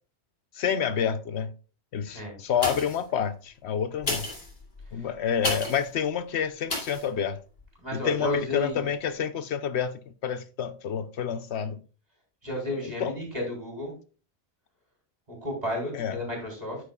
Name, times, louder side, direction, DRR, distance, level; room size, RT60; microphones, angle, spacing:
voice 1, 0.5-1.5 1.9-4.3 4.9-7.4 7.9-11.8 12.7-13.2 15.9-16.2, left 8 dB, 75° left, 0.9 m, -29 dB
sound 1, 2.5-3.1 3.9-5.9 6.7-7.1 7.6-7.7, left 2 dB, 55° left, 2.7 m, -32 dB
voice 2, 7.8-8.9 12.4-13.9 15.3-16.8, left 1 dB, 35° right, 3.6 m, -32 dB
9.1 x 8.4 x 2.3 m
omnidirectional pair, 1.2 m